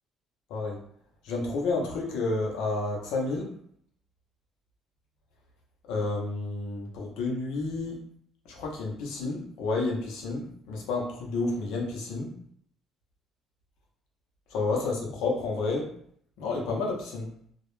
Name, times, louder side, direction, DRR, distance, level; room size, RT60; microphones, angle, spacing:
voice 1, 1.2-3.5 5.9-8.0 8.5-12.3 14.5-15.9 16.4-17.3, left 3 dB, 90° left, -1 dB, 0.6 m, -30 dB
2.3 x 2.0 x 3.0 m, 0.65 s
cardioid pair, 115°, 0 cm